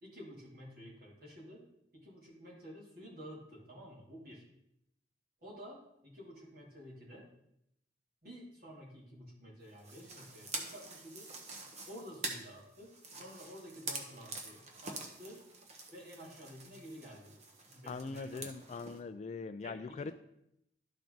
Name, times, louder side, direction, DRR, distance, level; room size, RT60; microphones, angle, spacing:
voice 1, 0.0-1.6 1.9-4.4 5.4-7.2 8.2-11.3 11.8-15.4 15.9-18.5 19.6-20.1, equal, 50° right, -5 dB, 2.9 m, -51 dB
sound 1, 9.8-19.0, right 3 dB, 35° right, 1.0 m, -46 dB
voice 2, 17.9-20.1, left 4 dB, 40° left, 12 dB, 0.3 m, -41 dB
12.0 x 4.5 x 3.9 m, 0.79 s
head